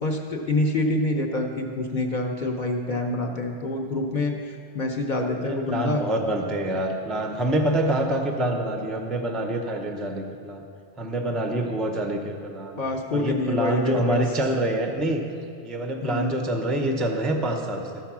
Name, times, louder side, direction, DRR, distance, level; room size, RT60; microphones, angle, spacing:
voice 1, 0.0-4.3 4.7-6.0 12.7-14.3 16.0-16.4, left 2 dB, 45° left, 1 dB, 0.7 m, -26 dB
voice 2, 5.4-10.6 11.0-12.8 13.1-15.2 15.6-18.0, right 1 dB, ahead, 4 dB, 0.5 m, -26 dB
13.5 x 4.6 x 6.0 m, 2.4 s
omnidirectional pair, 1.2 m